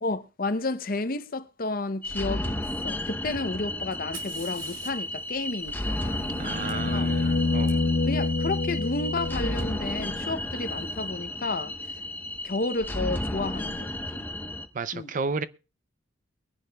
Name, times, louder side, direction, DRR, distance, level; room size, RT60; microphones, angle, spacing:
voice 1, 0.0-6.3 6.7-7.1 8.1-11.8 12.4-14.2 14.9-15.1, left 2 dB, 45° left, 0.6 m, -32 dB
sound 1, 2.0-14.7, left 1 dB, 10° left, 0.8 m, -33 dB
Fire, 3.9-7.7 9.6-9.7 10.5-10.9, right 4 dB, 80° right, 4.6 m, -48 dB
sound 2, 5.8-10.0 12.4-12.5, left 3 dB, 85° left, 1.1 m, -27 dB
voice 2, 6.4-7.8 14.7-15.4, right 4 dB, 40° right, 0.5 m, -32 dB
23.0 x 10.5 x 2.2 m
head